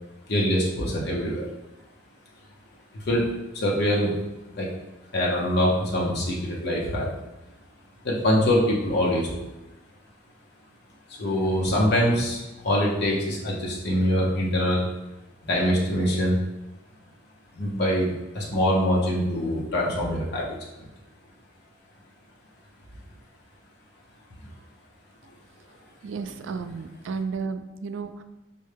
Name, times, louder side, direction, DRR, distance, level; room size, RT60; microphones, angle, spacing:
voice 1, 0.3-1.5 2.9-3.3 3.5-4.1 4.5-4.7 5.1-7.1 8.0-9.4 11.2-14.9 15.4-16.4 17.6-20.5 24.4-24.5, equal, 55° left, -3 dB, 0.8 m, -24 dB
voice 2, 26.0-28.2, right 5 dB, 70° right, 9 dB, 0.3 m, -33 dB
5.3 x 2.2 x 3.3 m, 1.0 s
head